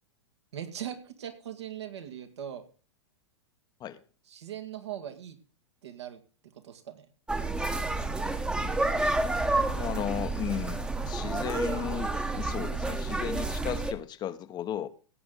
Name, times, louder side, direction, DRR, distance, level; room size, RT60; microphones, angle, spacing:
voice 1, 0.5-2.6 4.3-5.4 5.8-6.2 6.6-7.1, right 10 dB, 75° right, 2.2 m, -40 dB
sound 1, 7.3-13.9, right 2 dB, 5° right, 1.1 m, -29 dB
voice 2, 9.7-14.9, left 10 dB, 30° left, 0.9 m, -35 dB
16.5 x 7.9 x 4.0 m
hypercardioid pair, 105°, 14 cm